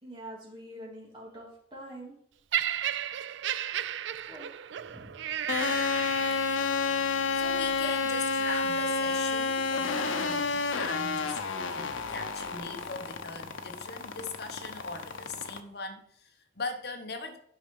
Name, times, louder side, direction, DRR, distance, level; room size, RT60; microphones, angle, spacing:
voice 1, 0.0-2.2 4.3-4.5 4.8-5.1 5.4-5.5 5.9-6.4, right 1 dB, 25° right, -3 dB, 2.8 m, -46 dB
Laughter, 2.5-6.8 7.6-7.7, right 10 dB, 70° right, 0.4 m, -33 dB
sound 1, 5.5-15.6, left 4 dB, 90° left, 0.8 m, -30 dB
voice 2, 7.3-17.4, left 3 dB, 55° left, 5 dB, 1.2 m, -40 dB
9.8 x 5.6 x 5.5 m, 0.67 s
head